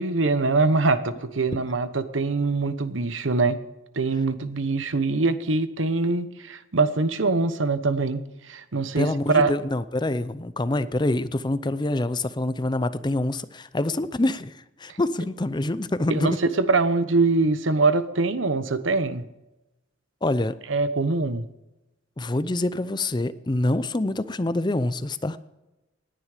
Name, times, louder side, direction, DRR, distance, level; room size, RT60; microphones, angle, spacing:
voice 1, 0.0-3.6 3.9-9.1 9.3-9.5 14.9-15.0 16.1-19.3 20.7-21.5, right 3 dB, 85° right, 12 dB, 1.1 m, -23 dB
voice 2, 9.0-16.3 20.2-20.5 22.2-25.4, left 2 dB, 25° left, 14 dB, 0.6 m, -26 dB
19.0 x 10.5 x 5.1 m, 0.99 s
head